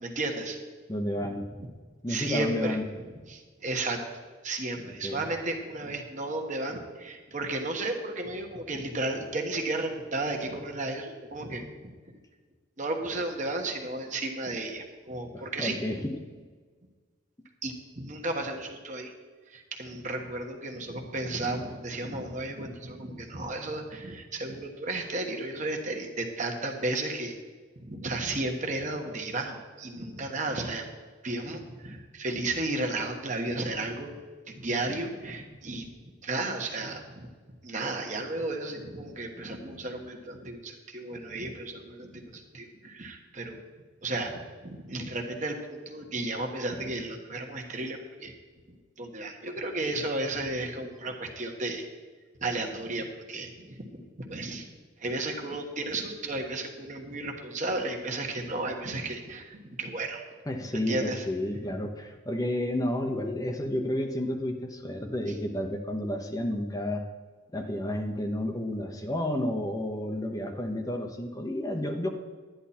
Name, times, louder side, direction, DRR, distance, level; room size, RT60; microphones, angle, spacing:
voice 1, 0.0-0.6 1.2-1.3 2.1-2.8 3.3-4.0 4.4-11.9 12.8-15.8 17.6-19.1 19.5-27.3 27.8-30.8 31.2-34.1 34.5-35.9 36.2-37.3 37.6-43.6 44.0-48.3 49.0-51.9 52.4-54.7 55.0-60.2 60.7-61.2, right 2 dB, 40° right, 3 dB, 1.4 m, -33 dB
voice 2, 0.9-1.5 2.0-2.8 5.0-5.2 15.3-16.1 60.5-67.0 67.5-72.1, left 1 dB, 20° left, 4 dB, 0.8 m, -31 dB
11.5 x 10.5 x 4.3 m, 1.5 s
head